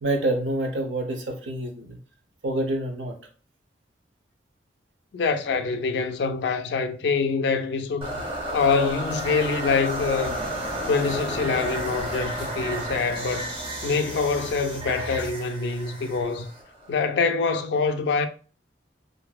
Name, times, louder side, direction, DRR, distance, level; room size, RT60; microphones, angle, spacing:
voice 1, 0.0-2.0 2.4-3.1, right 1 dB, 90° right, 0.7 m, -27 dB
voice 2, 5.1-8.2 8.5-10.4 10.9-13.5 13.8-16.5 16.9-18.3, left 4 dB, 65° left, 0.3 m, -25 dB
sound 1, 8.0-17.0, right 1 dB, 30° right, 0.6 m, -32 dB
sound 2, 10.2-15.3, equal, 70° right, 1.1 m, -40 dB
2.6 x 2.6 x 2.3 m
head